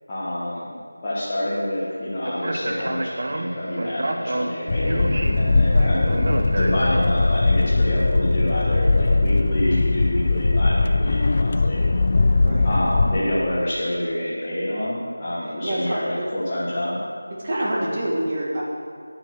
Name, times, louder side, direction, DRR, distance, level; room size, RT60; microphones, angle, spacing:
voice 1, 0.1-0.7 1.0-6.1 6.5-11.8 12.6-17.0, left 1 dB, 15° left, -11 dB, 1.5 m, -27 dB
Speech, 2.2-7.3, right 1 dB, 45° right, 1.0 m, -29 dB
sound 1, 4.7-13.2, left 3 dB, 35° left, 0.4 m, -20 dB
voice 2, 15.6-16.2 17.4-18.6, right 1 dB, 25° right, -4 dB, 2.0 m, -26 dB
10.5 x 9.0 x 6.2 m, 2.3 s
figure-of-eight pair, 175°, 0 cm